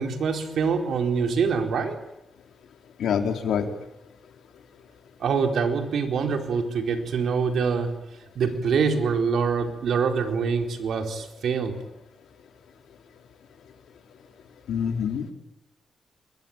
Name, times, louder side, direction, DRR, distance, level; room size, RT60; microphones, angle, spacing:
voice 1, 0.0-2.0 5.2-7.9 8.4-11.7, right 5 dB, 70° right, 5 dB, 4.3 m, -25 dB
voice 2, 3.0-3.7 14.7-15.3, left 7 dB, 80° left, 5 dB, 3.9 m, -25 dB
27.5 x 22.5 x 9.0 m, 0.86 s
cardioid pair, 105°, 0 cm